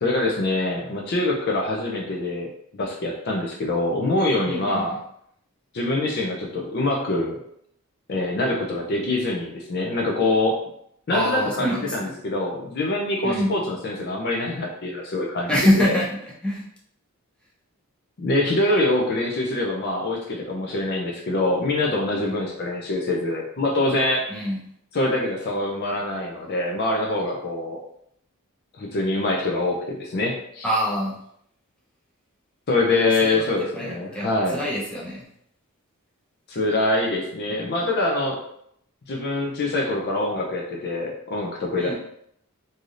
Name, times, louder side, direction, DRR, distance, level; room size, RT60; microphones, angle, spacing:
voice 1, 0.0-2.5 2.7-4.9 5.7-7.4 8.1-10.6 11.1-15.5 15.8-16.0 18.2-24.3 24.9-27.8 28.8-30.7 32.7-34.6 36.5-38.4 39.1-42.0, left 2 dB, 50° left, -1 dB, 0.4 m, -24 dB
voice 2, 4.4-4.8 11.1-12.1 13.2-13.5 15.5-16.1 16.4-16.6 22.2-22.3 24.3-24.6 30.6-31.2 33.2-33.5 33.8-35.3 37.5-37.7 41.8-42.0, equal, 5° left, -5 dB, 0.7 m, -25 dB
3.2 x 2.6 x 2.5 m, 0.72 s
head